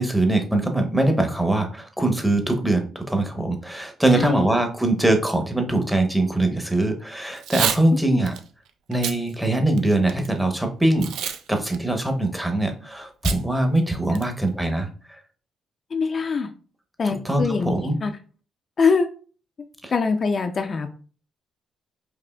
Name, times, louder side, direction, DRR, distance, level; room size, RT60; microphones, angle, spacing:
voice 1, 0.0-8.3 8.9-11.1 11.5-14.9 17.0-18.0 19.8-19.9, right 2 dB, 5° right, 4 dB, 0.8 m, -22 dB
voice 2, 4.1-4.5 8.1-8.2 15.9-16.5 17.0-17.7 18.0-18.1 18.8-19.1 19.9-20.9, left 5 dB, 45° left, 6 dB, 0.4 m, -23 dB
Packing tape duct tape / Tearing, 7.3-7.8 8.3-8.4 8.9-9.2 9.7-10.3 11.0-11.4 11.7-11.8 13.2-13.4 13.8-13.9 14.1-14.5, right 9 dB, 80° right, 0.3 m, -27 dB
4.8 x 2.7 x 2.2 m, 0.39 s
cardioid pair, 90°, 0 cm